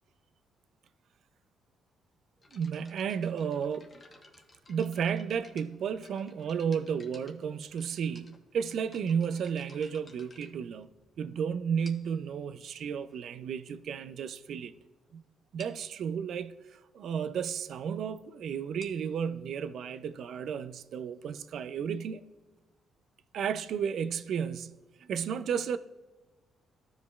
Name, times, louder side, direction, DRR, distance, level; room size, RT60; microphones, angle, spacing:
sound 1, 2.4-11.2 11.8-12.3 13.1-13.2 13.8-13.9 14.2-14.4 14.7-14.8 15.1-15.2 15.6-15.9 18.6-22.0, left 3 dB, 35° left, 1.1 m, -57 dB
voice 1, 2.5-4.0 4.7-10.9 11.2-14.7 15.1-15.2 15.5-22.2 23.3-25.8, right 7 dB, 70° right, 0.4 m, -33 dB
14.0 x 5.1 x 2.3 m
cardioid pair, 90°, 0 cm